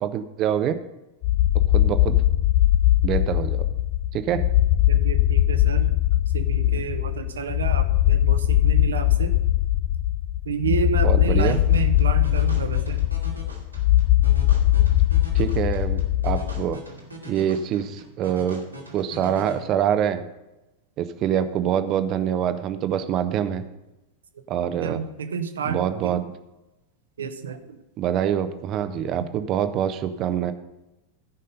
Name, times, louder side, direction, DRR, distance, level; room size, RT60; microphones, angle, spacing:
voice 1, 0.0-0.8 1.7-2.2 3.0-3.6 4.1-4.4 11.0-11.6 15.3-16.8 17.2-18.6 18.9-20.2 21.0-23.6 24.5-25.0 25.7-26.2 28.0-30.5, right 9 dB, 35° right, 10 dB, 0.8 m, -25 dB
sound 1, 1.2-16.8, left 14 dB, 45° left, 0.4 m, -20 dB
voice 2, 4.9-5.9 6.3-9.3 10.4-13.0 24.8-25.8 26.0-26.2 27.2-27.8, right 6 dB, 65° right, 8 dB, 1.0 m, -30 dB
sound 2, 11.5-19.5, right 1 dB, 85° right, 2.3 m, -41 dB
15.5 x 5.4 x 5.3 m, 0.99 s
figure-of-eight pair, 90°, 0 cm